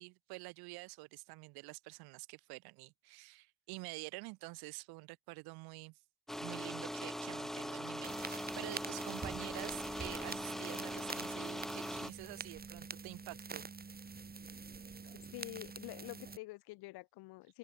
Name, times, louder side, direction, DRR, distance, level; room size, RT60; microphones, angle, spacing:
voice 1, 0.0-5.9 6.4-13.6, right 25 dB, 75° right, 0.8 m, -48 dB
sound 1, 6.3-12.1, equal, ahead, 1.4 m, -41 dB
sound 2, 8.0-16.4, right 4 dB, 25° right, 1.9 m, -46 dB
voice 2, 15.3-17.6, left 21 dB, 75° left, 2.2 m, -47 dB
supercardioid pair, 70°, 38 cm